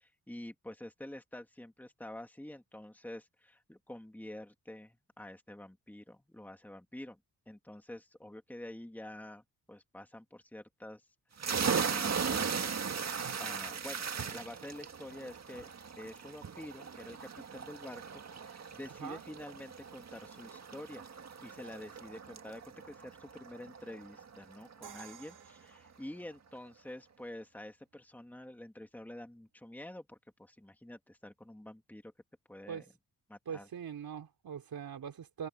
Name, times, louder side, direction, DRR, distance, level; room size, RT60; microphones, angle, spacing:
voice 1, 0.0-7.2 7.5-11.1 11.3-12.6 13.4-21.0 21.4-32.1 32.5-32.9 33.3-33.7, left 1 dB, 5° left, 2.2 m, -48 dB
sound 1, 11.4-24.7, right 6 dB, 45° right, 1.9 m, -38 dB
Crash cymbal, 24.8-26.7, right 7 dB, 85° right, 4.9 m, -53 dB
voice 2, 33.5-35.5, right 8 dB, 70° right, 4.2 m, -42 dB
cardioid pair, 100°, 37 cm